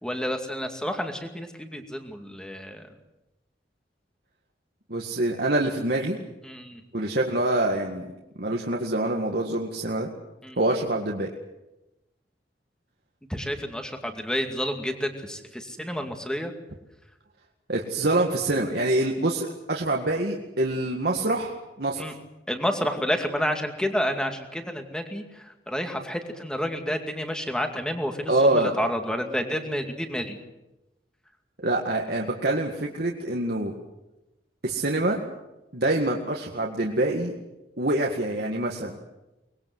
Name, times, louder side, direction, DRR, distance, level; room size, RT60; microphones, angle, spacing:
voice 1, 0.0-2.9 6.4-6.8 10.4-10.6 13.3-16.5 22.0-22.1 22.5-30.4, equal, 5° left, 5 dB, 2.3 m, -30 dB
voice 2, 4.9-6.2 6.9-8.1 8.4-10.1 10.6-11.3 17.7-22.0 28.3-28.7 31.6-33.7 34.6-35.2 35.7-37.3 37.8-38.9, right 2 dB, 60° right, 0 dB, 2.0 m, -25 dB
24.0 x 20.5 x 7.9 m, 0.99 s
head